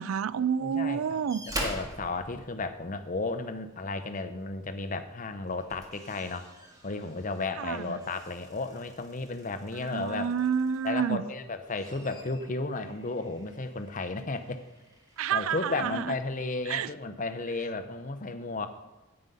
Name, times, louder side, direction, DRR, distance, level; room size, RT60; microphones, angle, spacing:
voice 1, 0.0-1.4 7.6-8.0 9.8-11.2 15.2-16.2 16.7-16.9, right 7 dB, 75° right, 0.4 m, -29 dB
voice 2, 0.6-1.2 1.6-6.5 6.8-10.3 10.8-14.6 15.3-18.7, left 3 dB, 40° left, 0.7 m, -34 dB
sound 1, 1.3-3.3 4.8-5.0 5.4-11.2 11.6-15.8 16.7-16.8, right 1 dB, 15° right, 1.7 m, -44 dB
9.5 x 8.9 x 5.4 m
head